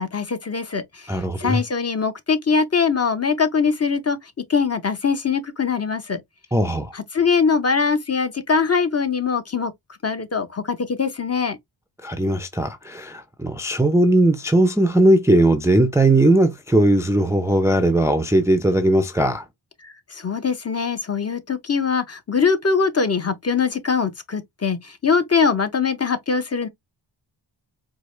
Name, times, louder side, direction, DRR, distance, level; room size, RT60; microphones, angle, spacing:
voice 1, 0.0-4.2 4.5-6.2 6.9-9.7 10.0-11.6 19.8-26.7, left 5 dB, 30° left, 0.7 m, -22 dB
voice 2, 1.1-1.6 6.5-6.9 12.0-19.5, right 1 dB, 5° right, 0.4 m, -18 dB
4.6 x 2.1 x 3.1 m
wide cardioid pair, 100°, 47 cm